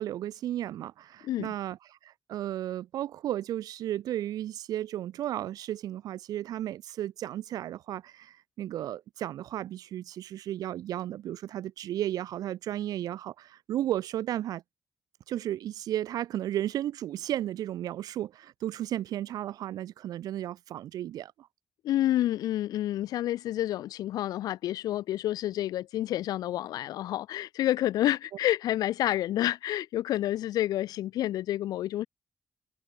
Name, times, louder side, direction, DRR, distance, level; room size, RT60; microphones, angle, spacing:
voice 1, 0.0-1.8 2.0-14.6 15.3-21.5, right 12 dB, 85° right, 1.6 m, -34 dB
voice 2, 21.8-32.1, left 13 dB, 85° left, 1.5 m, -29 dB
supercardioid pair, 45°, 6 cm